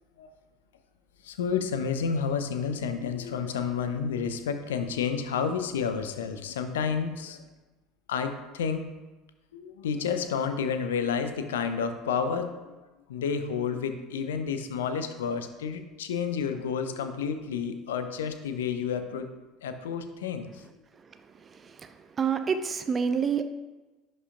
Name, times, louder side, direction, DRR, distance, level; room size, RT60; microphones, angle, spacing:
voice 1, 1.2-7.4 8.1-8.9 9.5-19.3 19.6-20.6, left 6 dB, 75° left, 8 dB, 0.6 m, -30 dB
voice 2, 22.2-23.4, right 6 dB, 30° right, 9 dB, 0.6 m, -27 dB
11.0 x 5.4 x 2.5 m, 1.2 s
figure-of-eight pair, 65°, 0 cm